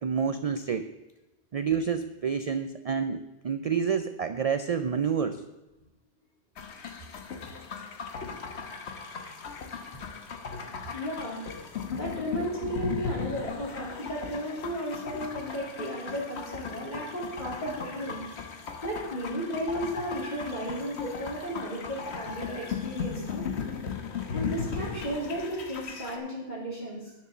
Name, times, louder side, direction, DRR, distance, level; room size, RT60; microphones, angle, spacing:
voice 1, 0.0-0.9 1.5-5.4, right 6 dB, 55° right, 10 dB, 0.4 m, -28 dB
sound 1, 6.6-26.2, left 6 dB, 75° left, 1.3 m, -37 dB
voice 2, 10.9-11.4 12.0-18.2 18.8-23.4 24.3-27.1, equal, 40° left, -4 dB, 3.3 m, -34 dB
9.6 x 7.1 x 6.6 m, 1.0 s
omnidirectional pair, 1.1 m